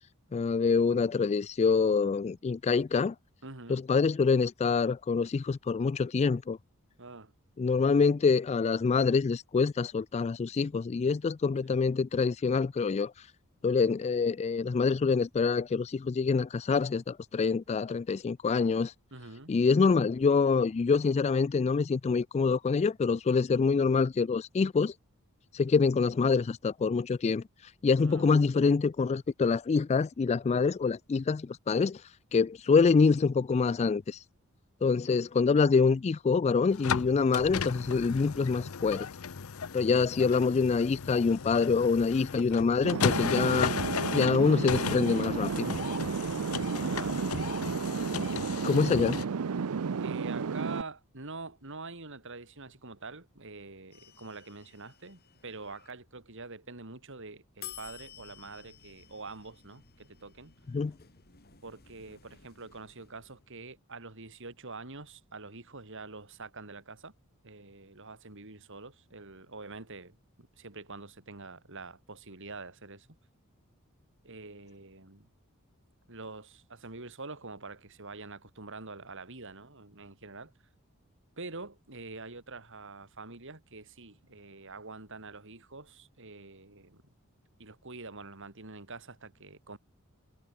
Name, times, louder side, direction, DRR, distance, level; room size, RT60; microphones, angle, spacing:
voice 1, 0.3-3.1 3.7-6.6 7.6-13.1 13.6-18.9 19.5-24.9 25.5-27.4 27.8-32.0 32.3-34.2 34.8-39.1 39.7-43.7 44.1-45.7 48.6-49.2 60.7-60.9, left 5 dB, 30° left, 0.3 m, -26 dB
voice 2, 3.4-3.8 7.0-7.3 11.7-11.8 19.1-19.5 28.0-28.5 32.7-32.9 43.3-43.7 46.2-47.7 50.0-60.5 61.6-67.1 67.4-70.2 70.6-73.1 74.2-75.3 76.1-80.5 81.4-87.0 87.6-89.8, right 3 dB, 60° right, 3.4 m, -45 dB
sound 1, 36.7-49.2, left 6 dB, 80° left, 0.7 m, -35 dB
sound 2, 42.8-50.8, right 5 dB, 90° right, 0.6 m, -32 dB
sound 3, 53.9-55.9 57.6-63.6, left 10 dB, 45° left, 3.2 m, -52 dB
head